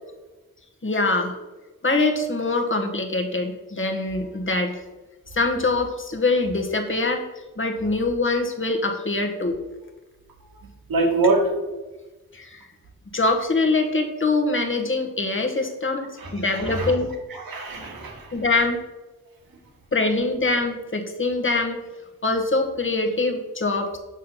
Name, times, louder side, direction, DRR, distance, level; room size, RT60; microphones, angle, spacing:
voice 1, 0.8-1.3 1.8-4.8 5.3-7.2 7.6-9.6 12.3-12.6 13.1-16.1 16.3-17.1 18.3-18.8 19.9-21.8 22.2-24.0, left 3 dB, 35° left, 4 dB, 1.5 m, -23 dB
voice 2, 10.9-11.4 16.2-16.9 17.3-18.3, right 3 dB, 75° right, 0 dB, 2.1 m, -24 dB
6.4 x 5.6 x 5.6 m, 1.2 s
cardioid pair, 55°, 36 cm